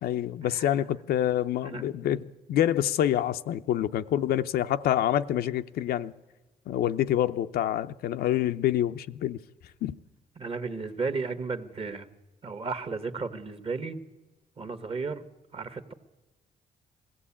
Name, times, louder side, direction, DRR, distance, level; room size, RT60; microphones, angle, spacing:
voice 1, 0.0-6.1 6.7-9.4 9.8-10.0, left 11 dB, 80° left, 0.6 m, -27 dB
voice 2, 10.4-12.1 12.4-14.0 14.6-15.2 15.5-15.9, right 4 dB, 35° right, 1.4 m, -34 dB
21.0 x 15.5 x 8.6 m
cardioid pair, 80°, 16 cm